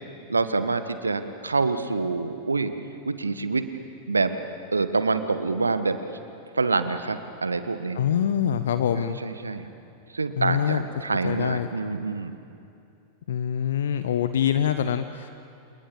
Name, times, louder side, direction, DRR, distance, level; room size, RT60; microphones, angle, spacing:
voice 1, 0.3-2.7 3.0-3.7 4.1-4.3 4.7-6.0 6.5-8.0 8.9-9.7 10.1-12.3, right 3 dB, 80° right, 10 dB, 1.5 m, -26 dB
voice 2, 7.9-9.2 10.4-10.8 11.2-11.7 13.3-15.3, left 9 dB, 60° left, 11 dB, 1.0 m, -25 dB
29.0 x 28.0 x 7.2 m, 2.6 s
figure-of-eight pair, 90°, 0 cm